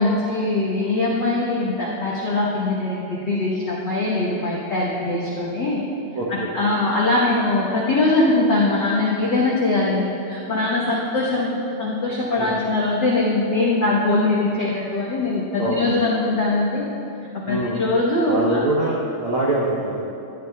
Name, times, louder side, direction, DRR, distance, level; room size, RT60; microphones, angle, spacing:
voice 1, 0.0-5.8 6.3-16.8 17.5-18.6, left 2 dB, 65° left, -6 dB, 1.1 m, -21 dB
voice 2, 6.1-6.5 12.3-12.5 15.6-15.9 17.4-17.8 18.2-20.0, right 2 dB, 65° right, -6 dB, 1.3 m, -24 dB
13.5 x 10.5 x 2.3 m, 2.7 s
omnidirectional pair, 3.6 m